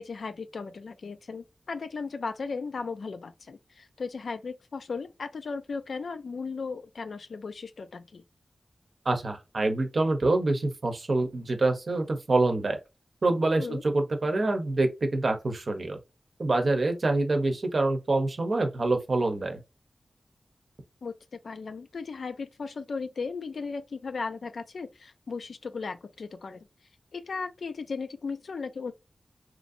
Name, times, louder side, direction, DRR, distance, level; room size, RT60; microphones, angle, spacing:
voice 1, 0.0-8.2 13.6-13.8 21.0-21.1 21.4-26.6 27.1-28.9, left 4 dB, 80° left, 0.3 m, -36 dB
voice 2, 9.0-12.8 13.2-16.0 16.4-19.6, right 2 dB, 60° right, 0.7 m, -26 dB
3.0 x 2.6 x 2.5 m
wide cardioid pair, 65°, 0 cm